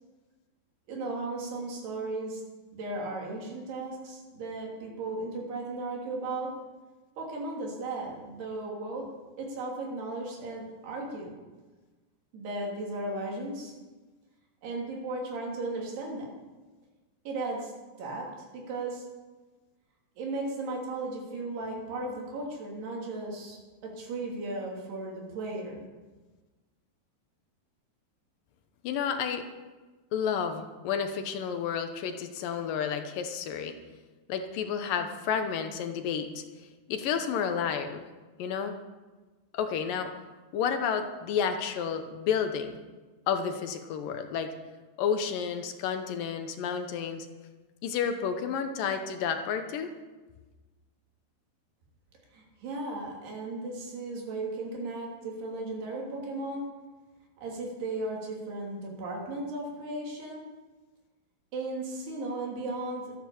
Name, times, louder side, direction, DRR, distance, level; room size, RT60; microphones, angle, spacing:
voice 1, 0.9-2.4 2.7-6.5 7.2-9.1 9.4-11.4 12.3-13.7 14.6-16.3 17.2-17.7 18.0-18.3 18.5-19.0 20.2-25.8 52.3-56.6 57.4-60.4 61.5-63.1, right 2 dB, 85° right, -1 dB, 5.0 m, -36 dB
voice 2, 28.8-29.5 30.1-33.8 34.3-36.4 36.9-38.0 38.4-38.8 39.5-40.1 40.5-42.8 43.3-44.5 45.0-47.3 47.8-49.9, left 7 dB, 70° left, 7 dB, 2.4 m, -31 dB
13.5 x 10.5 x 7.2 m, 1.3 s
omnidirectional pair, 4.5 m